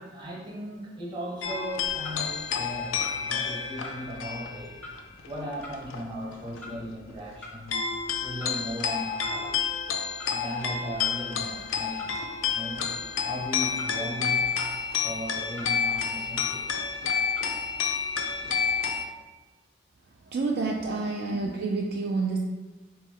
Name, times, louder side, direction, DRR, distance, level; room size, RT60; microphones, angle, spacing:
voice 1, 0.0-4.8 5.2-7.9 8.2-9.6 10.3-12.9 13.2-14.6 15.0-16.7 21.3-21.5, equal, 25° right, -4 dB, 0.9 m, -37 dB
sound 1, 1.4-6.0 6.3-7.1 7.7-19.1, left 6 dB, 85° left, 0.4 m, -30 dB
Clock, 1.7-18.8, left 1 dB, 5° left, 0.5 m, -48 dB
voice 2, 20.3-22.4, right 3 dB, 55° right, 0 dB, 0.3 m, -28 dB
3.6 x 3.0 x 3.6 m, 1.2 s
head